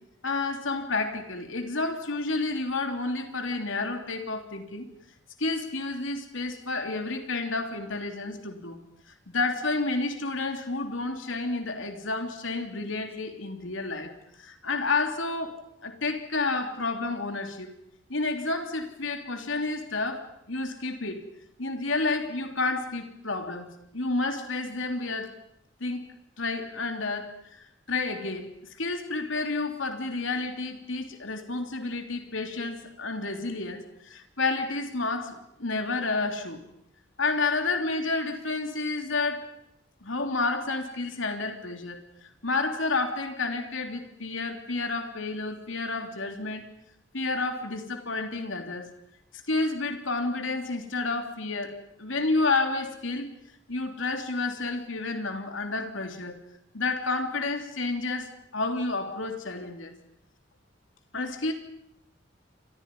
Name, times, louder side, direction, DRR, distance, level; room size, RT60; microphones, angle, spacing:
voice 1, 0.2-4.8 5.4-8.8 9.1-14.1 14.4-15.6 15.8-17.7 18.1-21.2 21.6-25.3 25.8-26.1 26.4-27.3 27.9-28.5 28.8-36.6 37.2-39.5 40.0-42.0 42.4-46.6 47.1-48.9 49.5-53.3 53.7-56.4 56.7-59.9 61.1-61.5, left 3 dB, 80° left, 5 dB, 3.2 m, -30 dB
30.0 x 26.0 x 5.5 m, 0.75 s
head